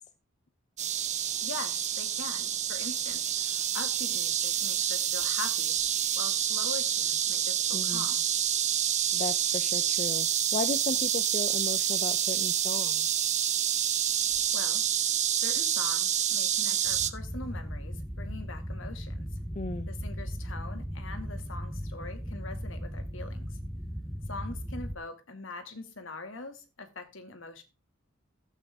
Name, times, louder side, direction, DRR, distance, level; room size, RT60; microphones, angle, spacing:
sound 1, 0.8-17.1, right 10 dB, 35° right, 0.9 m, -28 dB
voice 1, 1.4-5.8 6.2-8.2 14.5-14.9 15.4-19.3 19.9-23.6 24.3-27.6, left 3 dB, 65° left, 2.3 m, -42 dB
voice 2, 7.7-8.1 9.1-13.1 19.5-19.9, left 3 dB, 35° left, 0.6 m, -35 dB
sound 2, 16.9-25.0, equal, ahead, 0.9 m, -37 dB
14.5 x 8.3 x 3.6 m
head